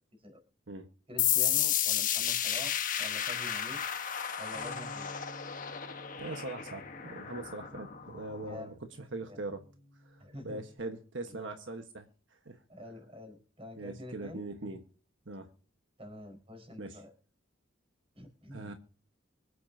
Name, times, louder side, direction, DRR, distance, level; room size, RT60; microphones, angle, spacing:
voice 1, 1.1-3.8 4.4-5.3 8.4-8.7 9.3-9.4 10.2-10.6 11.3-11.5 12.7-14.7 16.0-17.1 18.1-18.8, left 1 dB, 30° right, 3 dB, 4.5 m, -47 dB
sound 1, 1.2-8.6, left 10 dB, 45° left, 1.3 m, -32 dB
Bass guitar, 4.5-10.8, equal, 5° left, 3.9 m, -54 dB
voice 2, 6.2-9.6 10.0-12.6 13.8-14.8 15.3-15.5 16.8-17.0 18.5-18.7, right 2 dB, 75° right, 6 dB, 1.3 m, -41 dB
24.5 x 8.5 x 2.7 m, 0.40 s
head